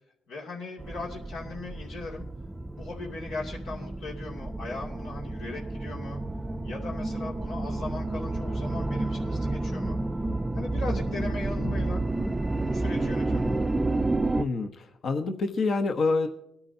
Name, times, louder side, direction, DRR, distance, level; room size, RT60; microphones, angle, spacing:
voice 1, 0.3-2.2 2.7-6.2 6.6-10.0 10.5-12.0 12.6-13.5, left 3 dB, 85° left, -3 dB, 2.4 m, -38 dB
sound 1, 0.8-14.4, right 2 dB, 15° right, 0.4 m, -30 dB
voice 2, 14.4-16.3, left 3 dB, 55° left, 6 dB, 1.0 m, -27 dB
20.5 x 9.8 x 2.7 m, 0.81 s
cardioid pair, 90°, 0 cm